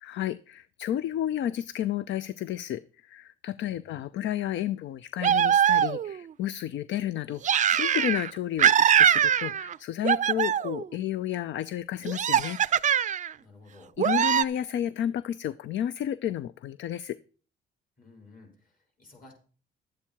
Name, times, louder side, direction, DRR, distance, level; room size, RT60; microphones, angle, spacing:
voice 1, 0.0-12.6 14.0-17.2, left 11 dB, 70° left, 17 dB, 0.4 m, -32 dB
voice 2, 3.6-4.1 13.4-13.9 18.0-19.3, left 3 dB, 45° left, 1 dB, 5.7 m, -54 dB
sound 1, 5.2-6.2 7.4-8.3 8.6-9.8 10.0-10.9 12.1-13.3 14.0-14.4, right 9 dB, 40° right, 0.4 m, -22 dB
11.5 x 8.5 x 4.6 m, 0.39 s
cardioid pair, 90°, 20 cm